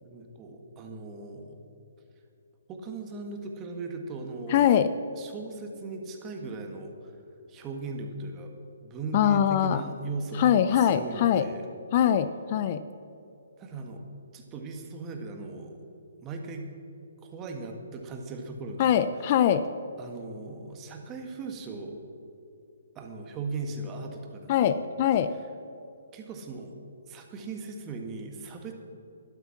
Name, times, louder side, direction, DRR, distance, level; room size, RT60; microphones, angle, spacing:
voice 1, 0.0-1.6 2.7-4.7 5.2-7.1 7.5-11.6 13.6-14.0 14.3-15.8 16.2-16.7 17.2-19.5 20.0-22.0 22.9-24.8 26.1-26.7 27.1-28.7, right 3 dB, 20° right, 3 dB, 1.8 m, -38 dB
voice 2, 4.5-4.9 9.1-9.8 10.4-11.4 11.9-12.8 18.8-19.6 24.5-25.4, left 9 dB, 40° left, 13 dB, 0.5 m, -22 dB
12.5 x 11.5 x 5.9 m, 2.7 s
figure-of-eight pair, 135°, 0 cm